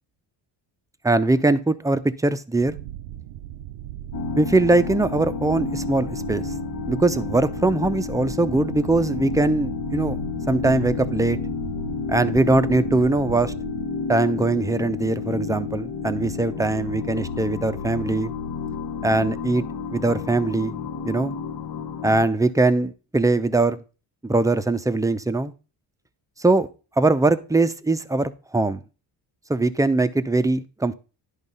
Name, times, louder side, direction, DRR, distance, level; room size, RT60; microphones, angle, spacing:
voice 1, 1.0-2.8 4.4-6.5 6.9-10.2 10.5-11.4 12.1-13.5 14.1-18.3 19.0-19.6 19.9-20.7 21.0-21.3 22.0-23.8 24.2-25.5 26.4-26.7 27.0-28.8 29.5-30.9, right 2 dB, 5° right, 0.6 m, -21 dB
sound 1, 2.6-13.8, right 12 dB, 85° right, 0.7 m, -38 dB
sound 2, 4.1-22.3, left 5 dB, 50° left, 0.9 m, -31 dB
10.5 x 3.7 x 5.5 m
cardioid pair, 85°, 45 cm